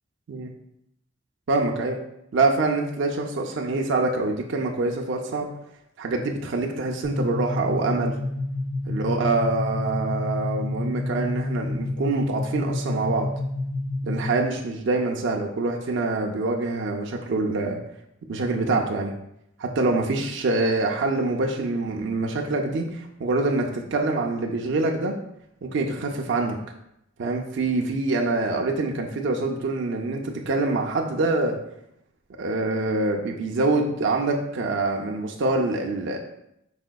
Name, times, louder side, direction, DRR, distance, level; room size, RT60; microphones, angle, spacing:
voice 1, 1.5-2.0 2.3-5.5 6.0-8.1 8.9-13.3 14.0-17.8 18.3-19.1 19.6-25.2 25.6-26.6 27.2-31.6 32.4-36.2, right 3 dB, 65° right, 1 dB, 0.4 m, -25 dB
sound 1, 7.0-14.6, left 2 dB, 75° left, 1.5 m, -29 dB
4.9 x 4.2 x 2.2 m, 0.80 s
head